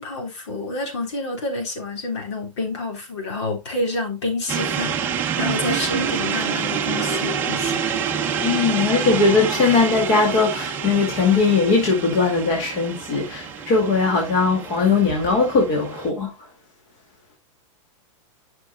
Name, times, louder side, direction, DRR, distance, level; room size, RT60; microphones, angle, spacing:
voice 1, 0.0-7.9, left 2 dB, 60° left, 3.8 m, -28 dB
sound 1, 4.5-16.1, right 7 dB, 10° right, 0.8 m, -27 dB
voice 2, 8.4-16.3, left 4 dB, 30° left, 2.2 m, -19 dB
12.0 x 6.2 x 2.3 m
supercardioid pair, 175°, 17 cm